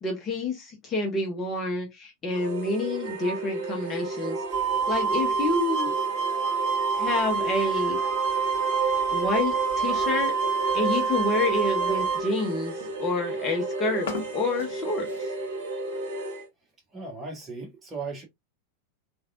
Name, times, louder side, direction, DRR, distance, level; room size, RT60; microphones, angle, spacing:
voice 1, 0.0-4.4 4.9-6.0 6.9-8.0 9.1-10.3 10.7-15.3, left 3 dB, 25° left, 1.0 m, -28 dB
sound 1, 2.3-16.5, right 3 dB, 55° right, 1.0 m, -32 dB
sound 2, 4.5-12.2, right 5 dB, 40° right, 1.8 m, -27 dB
sound 3, 7.9-15.6, left 4 dB, 60° left, 0.7 m, -45 dB
voice 2, 16.9-18.2, right 4 dB, 20° right, 1.4 m, -37 dB
3.3 x 2.6 x 2.4 m
figure-of-eight pair, 90°, 0 cm